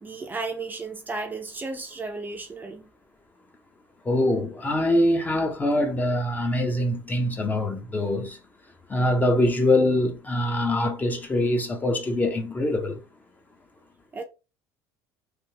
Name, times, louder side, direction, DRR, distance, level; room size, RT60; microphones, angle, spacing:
voice 1, 0.0-2.9 14.1-14.2, right 3 dB, 20° right, 0.5 m, -34 dB
voice 2, 4.0-8.4 8.9-13.0, left 1 dB, 20° left, 0.7 m, -24 dB
3.3 x 2.4 x 2.8 m
supercardioid pair, 100°, 8 cm